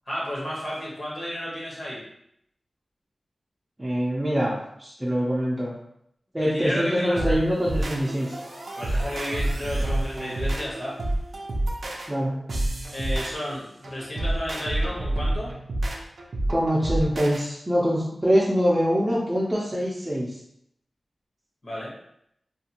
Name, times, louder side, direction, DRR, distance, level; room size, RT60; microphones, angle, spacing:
voice 1, 0.1-2.0 6.4-7.4 8.7-11.0 12.9-15.5 21.6-21.9, equal, 45° left, -5 dB, 1.0 m, -32 dB
voice 2, 3.8-4.5 4.8-5.7 6.3-8.4 12.1-12.4 16.5-20.4, equal, 15° right, -7 dB, 0.5 m, -24 dB
sound 1, 7.2-17.4, right 1 dB, 70° right, 0.4 m, -29 dB
2.5 x 2.3 x 2.8 m, 0.74 s
wide cardioid pair, 110°, 0 cm